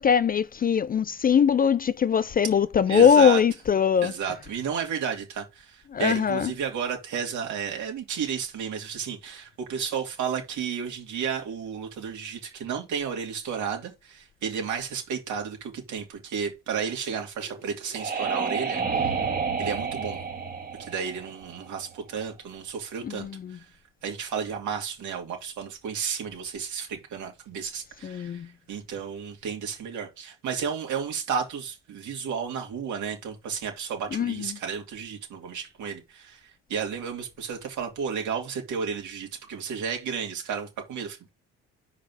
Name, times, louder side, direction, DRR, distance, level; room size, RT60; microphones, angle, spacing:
voice 1, 0.0-4.1 5.9-6.5 23.0-23.6 28.0-28.5 34.1-34.5, left 7 dB, 30° left, 0.4 m, -21 dB
voice 2, 2.9-3.4 4.0-19.1 19.6-20.2 20.8-23.7 24.0-41.3, right 7 dB, 70° right, 2.8 m, -32 dB
sound 1, 17.4-22.0, right 5 dB, 30° right, 1.8 m, -30 dB
5.3 x 4.7 x 6.1 m
hypercardioid pair, 60°, 31 cm